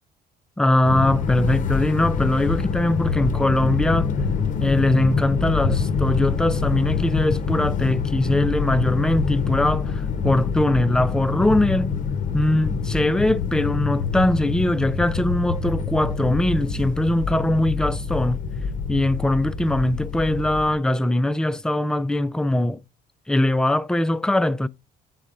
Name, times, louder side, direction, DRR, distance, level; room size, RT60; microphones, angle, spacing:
voice 1, 0.6-4.1 4.6-11.9 12.3-18.4 18.9-22.8 23.3-24.7, left 1 dB, 5° left, 0.3 m, -21 dB
sound 1, 0.8-20.8, left 5 dB, 50° left, 0.7 m, -25 dB
10.0 x 4.1 x 2.4 m
cardioid pair, 110°, 17 cm